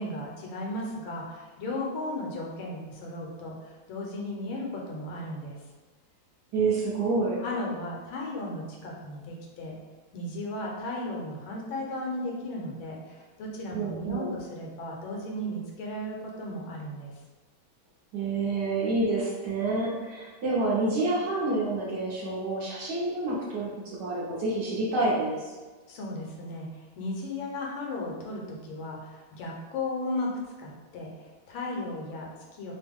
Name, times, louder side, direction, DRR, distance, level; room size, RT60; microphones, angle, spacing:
voice 1, 0.0-5.6 7.4-9.8 10.1-17.1 25.9-26.7 27.0-32.7, left 1 dB, 80° left, -2 dB, 1.5 m, -35 dB
voice 2, 6.5-7.4 13.7-14.3 18.1-25.4, right 2 dB, 65° right, -6 dB, 1.3 m, -28 dB
3.6 x 2.1 x 3.4 m, 1.3 s
omnidirectional pair, 2.2 m